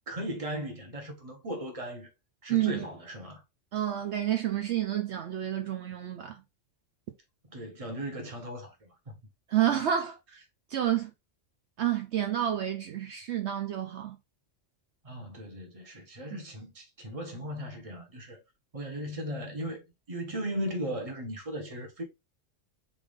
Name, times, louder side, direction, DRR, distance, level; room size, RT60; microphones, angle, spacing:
voice 1, 0.1-2.1 2.4-3.4 7.5-9.2 15.0-18.4 18.7-22.0, equal, 30° right, 1.1 m, -37 dB
voice 2, 2.5-2.8 3.7-6.4 9.5-10.4 10.7-11.1 11.8-14.2, right 11 dB, 65° right, 0.8 m, -29 dB
3.9 x 3.5 x 3.5 m
omnidirectional pair, 1.3 m